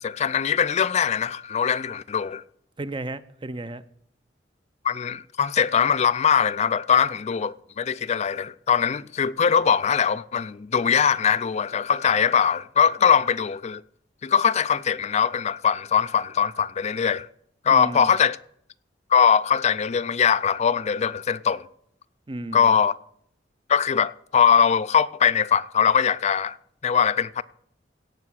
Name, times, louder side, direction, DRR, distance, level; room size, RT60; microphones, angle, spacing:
voice 1, 0.0-2.4 4.8-13.8 14.2-17.3 17.6-18.4 19.1-21.6 22.5-22.9 23.7-26.6 26.8-27.4, left 7 dB, 40° left, 0.4 m, -21 dB
voice 2, 2.8-3.8 17.7-18.2 22.3-22.8, right 2 dB, 25° right, 0.6 m, -34 dB
17.0 x 5.8 x 6.2 m
head